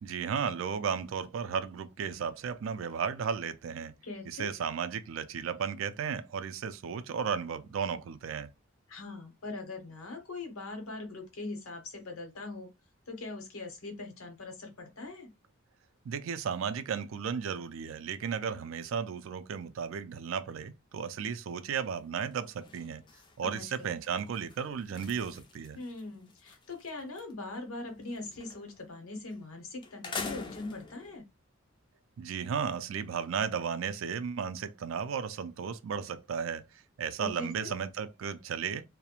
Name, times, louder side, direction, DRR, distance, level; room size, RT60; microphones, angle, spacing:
voice 1, 0.0-3.9 4.3-8.5 16.1-23.0 23.4-25.8 32.2-36.6 37.0-38.8, right 6 dB, 65° right, 0.3 m, -34 dB
voice 2, 4.0-4.5 8.9-12.7 13.1-15.3 23.4-23.9 25.8-31.2 37.2-37.7, left 2 dB, 85° left, 0.8 m, -41 dB
sound 1, 21.7-22.0 22.3-27.3 27.6-28.8 29.3-29.4 29.8-31.2, left 4 dB, 20° left, 0.3 m, -45 dB
2.3 x 2.0 x 2.8 m
head